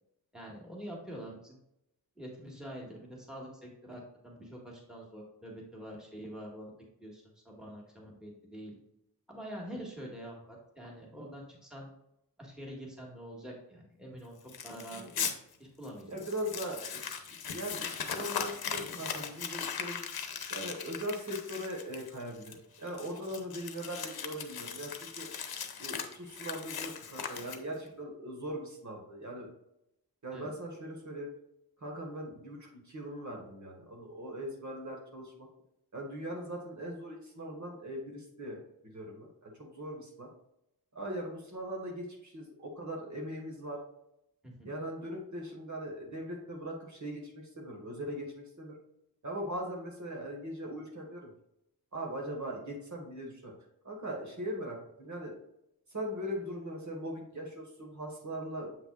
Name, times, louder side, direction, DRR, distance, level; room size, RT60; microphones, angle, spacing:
voice 1, 0.3-1.6 2.2-6.7 7.0-8.7 9.3-11.9 12.4-14.3 14.6-15.3 15.6-16.2 30.3-30.5 44.4-44.7, equal, ahead, -2 dB, 1.7 m, -45 dB
Crumpling crinkling, 14.5-15.3 15.8-15.9 16.2-27.9, left 7 dB, 80° left, 0.9 m, -39 dB
voice 2, 14.9-15.3 16.1-20.0 20.5-25.3 25.8-29.5 30.2-31.3 31.8-35.5 35.9-38.6 38.8-40.3 40.9-43.8 44.6-48.8 49.2-51.3 51.9-53.5 53.8-55.4 55.9-58.8, equal, 50° right, 0 dB, 1.7 m, -40 dB
7.6 x 5.7 x 2.4 m, 0.81 s
wide cardioid pair, 145°, 37 cm